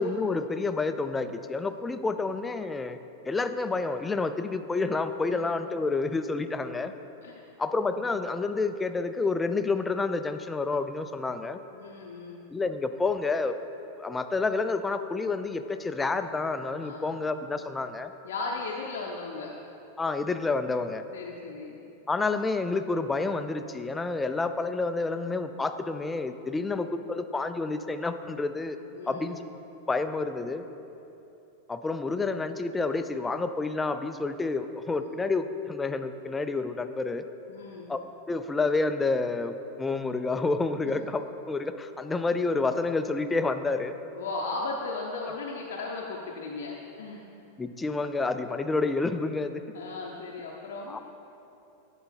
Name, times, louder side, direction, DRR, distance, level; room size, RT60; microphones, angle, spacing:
voice 1, 0.0-3.0 3.3-6.9 7.6-11.6 12.5-13.5 14.0-18.1 20.0-21.0 22.1-28.8 29.1-29.4 29.9-30.6 31.7-37.2 37.9-38.0 38.3-43.9 47.6-49.6 50.9-51.0, left 3 dB, 10° left, 9 dB, 0.3 m, -29 dB
voice 2, 11.7-12.5 16.8-17.1 18.2-19.5 21.1-21.8 26.5-26.7 28.9-29.3 35.0-35.2 37.5-37.9 40.8-40.9 44.2-47.2 49.7-51.0, left 3 dB, 60° left, -2 dB, 0.6 m, -37 dB
10.0 x 3.8 x 4.3 m, 2.8 s
figure-of-eight pair, 90°, 0 cm